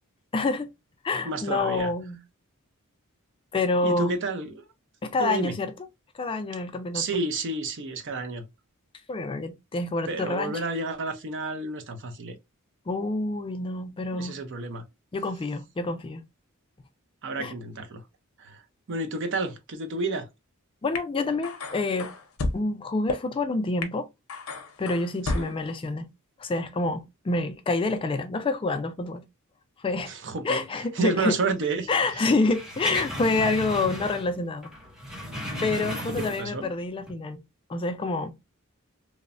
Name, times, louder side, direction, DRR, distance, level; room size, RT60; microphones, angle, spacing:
voice 1, 0.3-0.7 1.0-2.2 3.5-4.1 5.0-5.7 6.1-7.2 9.1-10.6 12.9-14.4 15.1-16.2 17.4-17.5 20.8-22.1 22.5-24.1 24.8-26.1 26.4-29.2 29.8-30.1 30.4-31.4 31.9-34.7 35.6-37.4 37.7-38.3, left 3 dB, 25° left, 0.3 m, -27 dB
voice 2, 1.3-1.9 3.8-4.6 5.2-5.5 6.9-8.5 10.1-12.4 14.1-14.8 17.2-18.0 18.4-18.6 18.9-20.3 25.3-25.5 30.1-30.6 30.9-32.2 36.2-36.7, right 3 dB, 60° right, 0.6 m, -30 dB
sound 1, 20.9-21.0 21.4-22.6 23.1-23.2 23.8-23.9 24.3-25.6, left 3 dB, 85° left, 0.6 m, -31 dB
sound 2, 32.4-34.4 34.6-36.6 37.0-37.1, equal, 5° right, 0.7 m, -35 dB
3.0 x 2.0 x 2.4 m
head